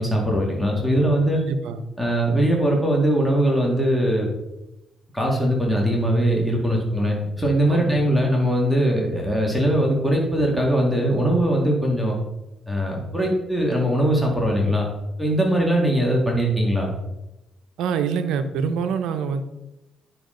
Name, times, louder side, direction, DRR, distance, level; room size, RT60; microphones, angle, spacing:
voice 1, 0.0-1.4 2.0-4.3 5.1-12.2 12.7-14.9 15.2-16.9, right 1 dB, ahead, -2 dB, 2.0 m, -21 dB
voice 2, 1.5-1.8 7.7-7.9 17.8-19.4, right 6 dB, 85° right, 9 dB, 0.8 m, -25 dB
10.0 x 6.1 x 3.9 m, 0.97 s
cardioid pair, 90°, 0 cm